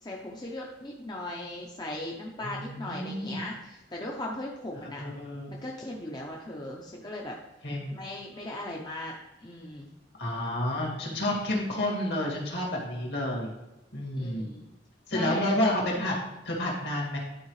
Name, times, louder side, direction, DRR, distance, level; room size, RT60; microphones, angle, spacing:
voice 1, 0.0-5.0 5.5-7.4 7.9-9.1 9.4-9.9 11.0-11.3 14.2-14.7 15.1-15.5, left 1 dB, 20° left, -2 dB, 0.7 m, -38 dB
voice 2, 2.4-3.4 4.8-5.5 7.6-7.9 10.2-13.5 13.9-14.5 15.1-16.2 16.5-17.2, left 1 dB, 60° left, -2 dB, 2.3 m, -30 dB
11.5 x 4.6 x 3.2 m, 1.0 s
head